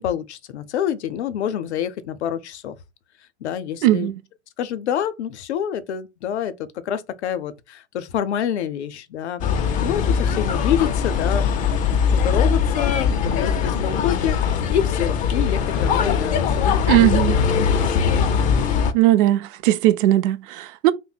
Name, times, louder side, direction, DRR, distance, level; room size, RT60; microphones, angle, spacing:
voice 1, 0.0-2.8 3.4-4.1 4.6-9.4 9.8-17.2, left 9 dB, 75° left, 0.5 m, -27 dB
voice 2, 3.8-4.2 16.9-17.4 18.9-20.9, right 15 dB, 50° right, 0.5 m, -18 dB
sound 1, 9.4-18.9, left 6 dB, 25° left, 0.4 m, -21 dB
2.6 x 2.1 x 4.0 m
hypercardioid pair, 90°, 34 cm